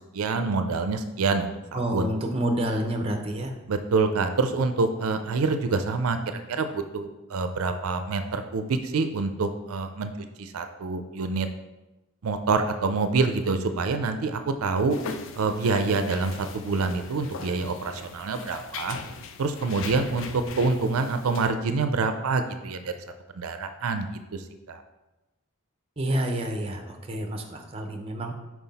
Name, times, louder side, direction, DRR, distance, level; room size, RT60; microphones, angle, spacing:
voice 1, 0.0-2.1 3.7-10.1 10.4-11.5 12.2-15.0 15.3-19.0 19.4-22.9 23.4-24.1 24.3-24.8, right 4 dB, 75° right, 8 dB, 0.4 m, -26 dB
voice 2, 1.7-3.5 26.0-28.3, right 1 dB, 25° right, 4 dB, 0.6 m, -28 dB
sound 1, 14.9-21.5, left 5 dB, 60° left, 0.4 m, -40 dB
5.7 x 4.7 x 4.0 m, 1.0 s
head